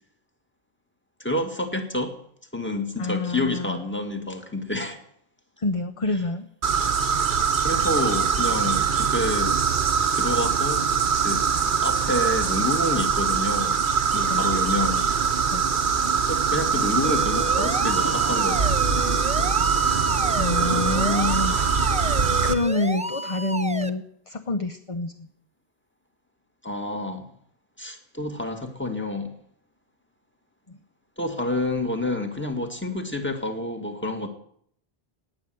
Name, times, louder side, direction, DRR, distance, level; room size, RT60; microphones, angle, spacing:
voice 1, 1.2-2.2 2.5-5.0 7.6-9.6 10.1-11.5 11.8-13.8 14.1-15.0 16.3-18.7 26.6-27.3 27.8-29.3 31.2-34.3, left 1 dB, 10° left, 5 dB, 2.0 m, -28 dB
voice 2, 3.0-3.8 5.6-6.5 14.3-14.4 15.5-15.7 20.3-25.3 30.7-30.8, left 2 dB, 35° left, 9 dB, 0.8 m, -27 dB
sound 1, 6.6-22.5, right 6 dB, 50° right, 1.1 m, -23 dB
sound 2, 17.0-23.9, right 1 dB, 10° right, 0.6 m, -32 dB
18.0 x 9.7 x 7.7 m, 0.68 s
omnidirectional pair, 1.1 m